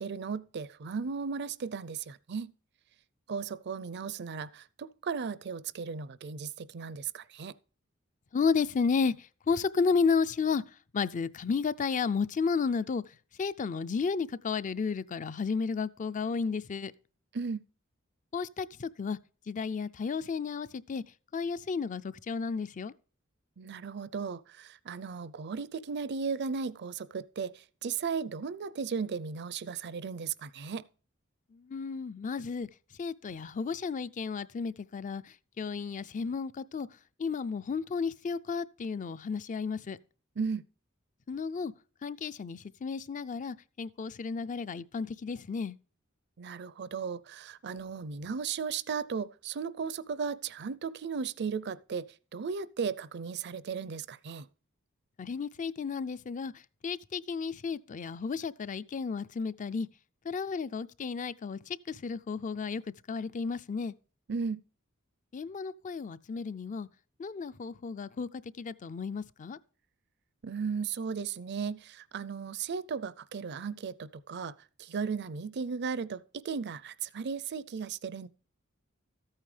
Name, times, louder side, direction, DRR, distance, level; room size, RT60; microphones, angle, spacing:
voice 1, 0.0-2.5 3.3-7.5 17.3-17.6 23.6-27.5 27.8-30.8 40.4-40.6 46.4-52.1 52.3-54.5 64.3-64.6 70.4-74.5 74.8-78.3, right 5 dB, 55° right, 0.5 m, -36 dB
voice 2, 8.3-16.9 18.3-19.2 19.5-21.0 21.3-22.9 31.5-32.7 33.0-36.9 37.2-40.0 41.3-41.7 42.0-45.8 55.2-59.9 60.2-62.8 63.1-63.9 65.3-66.9 67.2-69.6, left 5 dB, 40° left, 0.4 m, -33 dB
14.0 x 8.9 x 3.3 m
head